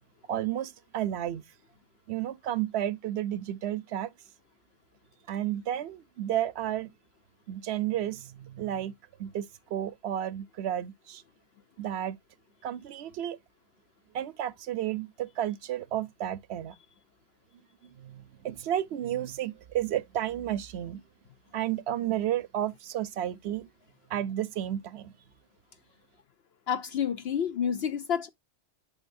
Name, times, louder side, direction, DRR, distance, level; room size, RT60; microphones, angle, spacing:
voice 1, 0.3-1.4 2.1-4.1 5.3-6.9 7.5-8.9 9.2-11.2 11.8-12.2 12.6-13.4 14.1-16.7 17.8-21.0 21.5-23.7 24.1-25.1, right 11 dB, 65° right, 0.9 m, -32 dB
voice 2, 26.7-28.3, left 8 dB, 65° left, 0.8 m, -29 dB
11.0 x 4.0 x 2.6 m
omnidirectional pair, 1.2 m